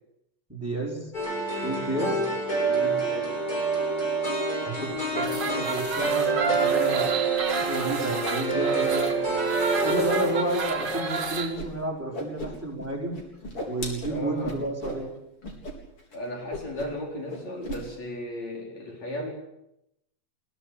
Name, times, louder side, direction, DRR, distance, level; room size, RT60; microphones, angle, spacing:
voice 1, 0.5-1.1 1.6-2.2 4.6-7.3 7.7-9.3 9.8-13.2 13.7-15.1, right 2 dB, 5° right, -1 dB, 4.6 m, -31 dB
sound 1, 1.1-10.4, right 3 dB, 30° left, 8.4 m, -27 dB
voice 2, 2.0-2.3 2.6-3.4 14.0-14.6 16.1-19.3, left 1 dB, 60° left, 0 dB, 5.6 m, -35 dB
sound 2, 5.1-11.5, right 4 dB, 40° right, 3.0 m, -31 dB
Whoosh swoosh swish, 11.6-11.7 11.9-12.9 13.1-15.0 15.4-15.7 16.0-16.2 16.5-17.0 17.3-17.8, equal, 45° left, 5.0 m, -36 dB
22.5 x 16.5 x 8.4 m, 0.84 s
omnidirectional pair, 3.4 m